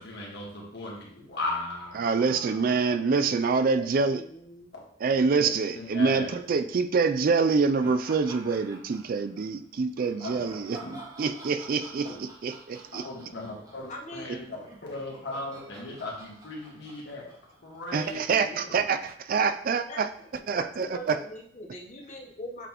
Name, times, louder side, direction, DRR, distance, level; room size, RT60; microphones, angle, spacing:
voice 1, 0.0-3.2 4.7-4.8 5.4-5.5 5.7-6.3 10.2-11.0 12.0-12.2 12.9-17.2 17.6-18.8, left 2 dB, 65° left, -2 dB, 1.6 m, -38 dB
voice 2, 2.0-4.2 5.0-10.8 11.2-13.1 17.9-20.1 20.5-21.2, right 4 dB, 50° right, 9 dB, 0.4 m, -26 dB
voice 3, 3.8-4.7 13.9-14.3 19.9-22.7, left 1 dB, 40° left, 1 dB, 0.9 m, -42 dB
sound 1, 7.8-9.4 9.9-18.2, right 2 dB, 20° right, 1.1 m, -49 dB
8.0 x 4.0 x 3.0 m, 0.64 s
head